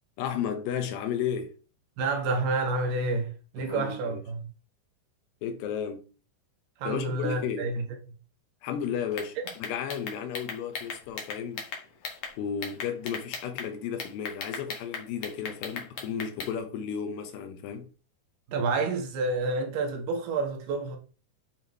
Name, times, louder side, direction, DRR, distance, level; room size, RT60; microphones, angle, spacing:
voice 1, 0.2-1.6 3.6-4.2 5.4-6.1 6.8-7.7 8.6-11.6 12.4-17.9, left 8 dB, 80° left, 3.2 m, -33 dB
voice 2, 2.0-4.4 6.8-7.9 18.5-21.0, right 3 dB, 70° right, 3.4 m, -29 dB
sound 1, 9.1-12.3 12.6-13.7 14.0-16.5, left 5 dB, 50° left, 1.7 m, -37 dB
9.1 x 6.2 x 3.2 m
omnidirectional pair, 4.9 m